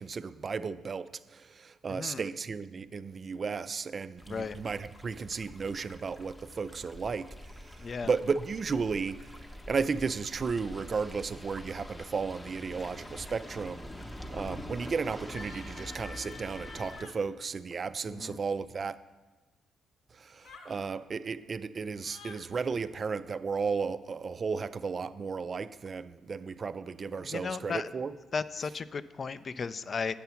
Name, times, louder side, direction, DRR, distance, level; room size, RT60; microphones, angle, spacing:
voice 1, 0.0-19.0 20.1-28.1, right 5 dB, 40° right, 0.3 m, -34 dB
voice 2, 1.9-2.2 4.3-4.6 7.8-8.1 14.3-14.6 18.1-18.4 27.2-27.9 28.3-30.2, left 5 dB, 40° left, 0.3 m, -35 dB
sound 1, 4.2-17.0, left 1 dB, 15° left, 0.8 m, -45 dB
sound 2, 15.2-17.2 20.4-20.8 22.0-22.4, left 3 dB, 80° left, 1.0 m, -48 dB
8.3 x 6.9 x 5.7 m
cardioid pair, 90°, 0 cm